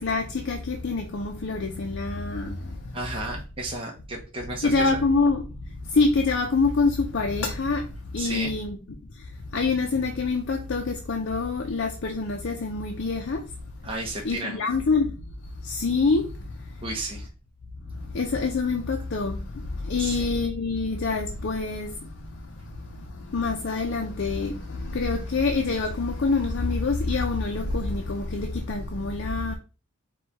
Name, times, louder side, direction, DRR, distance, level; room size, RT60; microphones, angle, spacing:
voice 1, 0.0-3.0 4.6-5.4 5.8-8.8 9.2-13.4 14.2-15.2 15.6-16.8 17.9-29.5, left 3 dB, 55° left, 0.5 m, -26 dB
voice 2, 2.9-5.0 8.2-8.6 13.8-14.6 16.8-17.3 20.0-20.3, right 2 dB, 25° right, 0.8 m, -33 dB
4.6 x 2.3 x 4.1 m
head